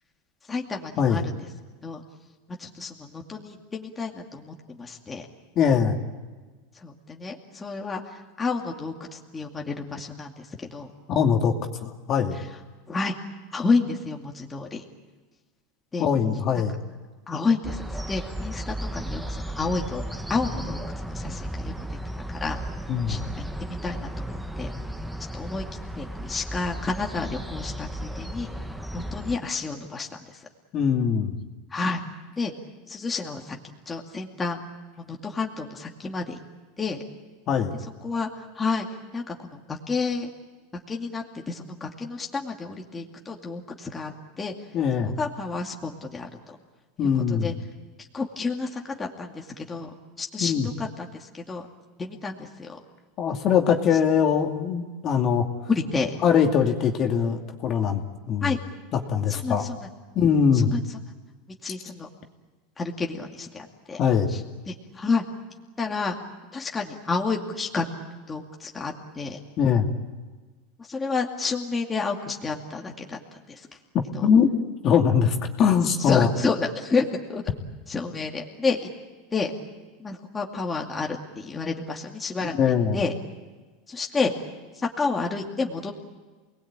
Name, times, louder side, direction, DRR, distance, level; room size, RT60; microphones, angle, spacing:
voice 1, 0.5-1.3 1.8-2.0 2.6-5.3 6.7-10.9 12.3-12.5 12.9-13.1 13.5-14.8 15.9-16.1 17.3-20.0 20.3-22.0 22.3-22.6 23.1-24.7 25.3-25.6 26.0-28.5 28.9-30.5 31.7-32.0 32.4-32.5 32.9-33.6 33.9-34.6 35.0-36.4 36.8-37.0 38.0-38.9 39.1-40.3 40.9-44.5 45.0-46.6 47.0-47.5 48.0-49.9 50.2-51.7 52.0-52.8 55.7-56.1 58.4-58.6 59.3-59.9 60.5-61.0 61.6-62.1 62.8-64.0 64.3-64.4 64.7-65.2 65.8-66.2 66.5-67.9 68.3-69.4 70.8-73.2 73.5-73.7 74.1-74.3 76.0-77.4 77.9-78.9 79.3-79.5 80.0-83.1 83.9-84.3 84.7-85.9, left 4 dB, 15° left, 0 dB, 2.3 m, -30 dB
voice 2, 5.6-6.0 11.1-11.5 11.8-12.3 16.0-16.8 22.9-23.2 30.7-31.3 37.5-37.8 44.7-45.1 47.0-47.5 50.4-50.7 53.2-55.5 56.2-58.0 58.3-58.5 59.1-59.7 60.2-60.7 64.0-64.3 69.6-69.9 74.2-74.5 74.8-76.3 82.6-83.0, left 7 dB, 35° left, 3 dB, 2.4 m, -22 dB
sound 1, 17.6-29.4, right 1 dB, 5° right, 1.5 m, -34 dB
29.0 x 20.0 x 8.9 m, 1.3 s
supercardioid pair, 140°, 0 cm